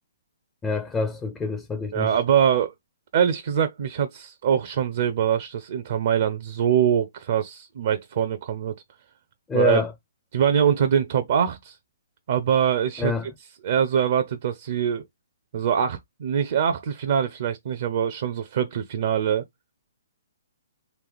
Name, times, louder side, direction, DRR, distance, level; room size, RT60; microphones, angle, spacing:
voice 1, 0.6-2.1 9.5-9.9 13.0-13.3, left 3 dB, 15° left, 0.4 m, -26 dB
voice 2, 1.9-2.7 3.1-8.7 9.5-9.8 10.3-11.8 12.3-13.1 13.6-15.0 15.5-19.4, right 8 dB, 50° right, 0.5 m, -23 dB
3.4 x 3.0 x 3.3 m
figure-of-eight pair, 125°, 0 cm